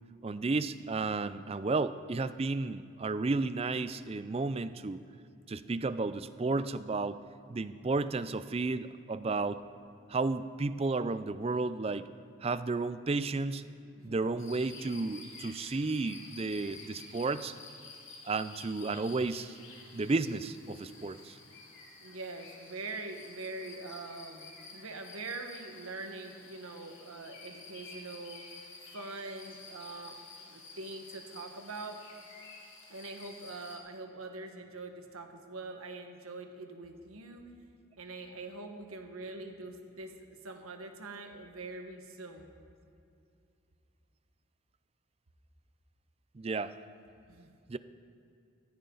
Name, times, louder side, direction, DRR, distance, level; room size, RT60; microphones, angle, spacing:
voice 1, 0.2-5.0 5.5-7.2 7.5-9.6 10.1-12.1 12.4-13.6 14.0-17.5 18.2-19.6 19.9-21.4 46.3-46.7 47.7-47.8, right 3 dB, 30° right, 14 dB, 0.4 m, -32 dB
sound 1, 14.4-33.8, left 3 dB, 60° left, 2.7 m, -51 dB
voice 2, 22.0-28.4 28.9-30.2 30.5-32.0 32.9-37.5 38.0-40.1 40.4-42.5 47.3-47.5, right 3 dB, 90° right, 5 dB, 1.5 m, -43 dB
15.5 x 14.0 x 3.9 m, 2.6 s
head